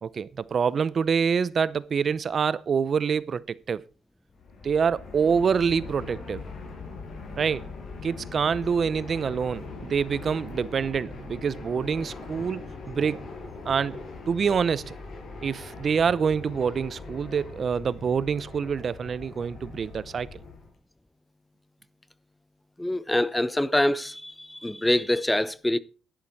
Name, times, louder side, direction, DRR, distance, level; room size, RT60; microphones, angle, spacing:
voice 1, 0.0-3.8 4.6-6.4 7.4-7.6 8.0-13.3 13.6-14.0 14.3-14.9 15.4-20.4, right 6 dB, 50° right, 0.7 m, -26 dB
Fixed-wing aircraft airplane, 4.3-20.7, left 4 dB, 60° left, 6.6 m, -41 dB
voice 2, 22.8-25.8, left 1 dB, 10° left, 0.7 m, -25 dB
11.5 x 11.0 x 4.6 m
cardioid pair, 90°, 0 cm